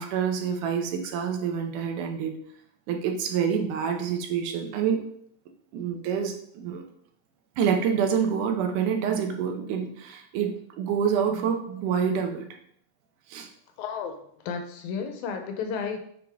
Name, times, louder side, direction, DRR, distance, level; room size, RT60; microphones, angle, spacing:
voice 1, 0.0-2.3 2.9-5.0 5.7-6.8 7.6-12.4 13.3-13.5, right 7 dB, 80° right, 3 dB, 2.4 m, -27 dB
voice 2, 13.8-16.0, left 6 dB, 75° left, 5 dB, 2.0 m, -33 dB
7.6 x 5.0 x 3.5 m, 0.67 s
omnidirectional pair, 3.7 m